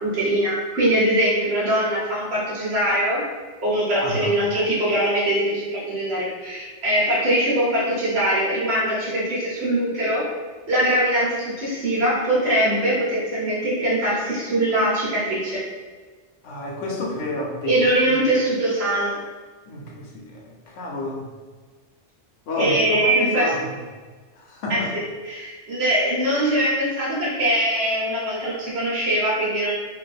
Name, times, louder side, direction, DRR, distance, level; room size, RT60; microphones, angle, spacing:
voice 1, 0.0-3.2 3.6-10.3 10.7-15.6 17.6-19.2 22.6-23.5 24.7-29.7, right 1 dB, 60° right, -7 dB, 1.3 m, -22 dB
voice 2, 4.0-4.4 16.4-17.8 19.7-21.3 22.5-23.8 24.4-24.9, left 1 dB, 90° left, -1 dB, 1.1 m, -30 dB
2.9 x 2.5 x 4.0 m, 1.4 s
omnidirectional pair, 1.2 m